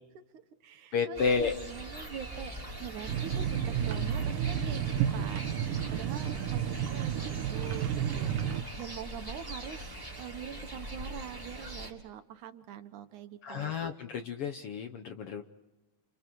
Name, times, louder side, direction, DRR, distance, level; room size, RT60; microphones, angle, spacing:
voice 1, 0.1-13.7, right 8 dB, 75° right, 9 dB, 2.6 m, -44 dB
voice 2, 0.9-1.5 13.4-15.4, left 5 dB, 65° left, 7 dB, 1.5 m, -31 dB
sound 1, 1.2-11.9, right 1 dB, 5° right, 2.5 m, -42 dB
sound 2, 3.1-8.6, right 9 dB, 90° right, 2.7 m, -31 dB
29.5 x 29.0 x 4.6 m, 1.1 s
omnidirectional pair, 3.6 m